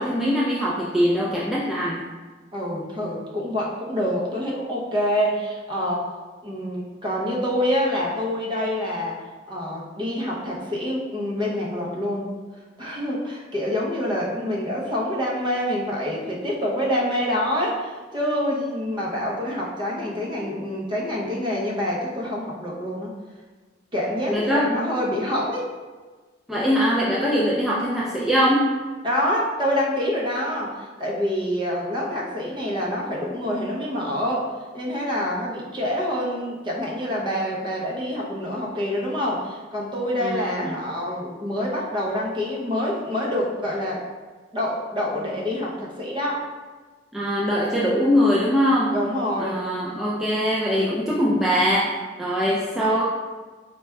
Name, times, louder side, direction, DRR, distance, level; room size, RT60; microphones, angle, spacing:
voice 1, 0.0-2.0 24.3-24.9 26.5-28.7 40.2-40.7 47.1-49.0 49.4-53.0, equal, ahead, -7 dB, 0.3 m, -22 dB
voice 2, 2.5-6.1 6.4-9.2 9.5-12.4 12.8-23.1 23.9-25.7 27.2-27.4 29.0-44.0 44.5-46.4 48.9-49.6, equal, 25° right, -4 dB, 0.7 m, -26 dB
4.1 x 2.2 x 3.4 m, 1.4 s
head